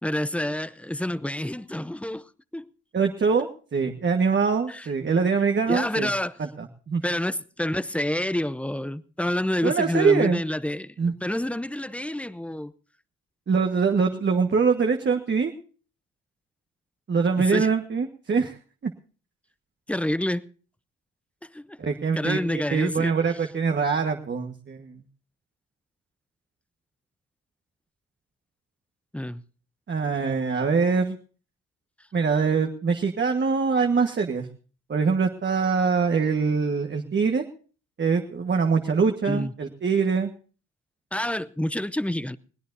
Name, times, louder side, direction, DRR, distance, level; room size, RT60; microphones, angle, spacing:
voice 1, 0.0-2.3 2.5-2.7 4.7-4.9 5.7-6.3 7.0-10.9 11.2-12.7 17.5-17.7 19.9-20.4 21.5-21.8 22.2-23.1 29.1-29.4 39.2-39.5 41.1-42.4, left 1 dB, 5° left, 0.7 m, -28 dB
voice 2, 2.9-6.1 6.4-7.0 9.6-10.4 11.0-11.1 13.5-15.5 17.1-18.6 18.8-18.9 21.8-25.0 29.9-31.2 32.1-34.5 34.9-37.4 38.0-40.3, right 5 dB, 35° right, 1.4 m, -23 dB
21.5 x 17.0 x 2.7 m
cardioid pair, 90°, 30 cm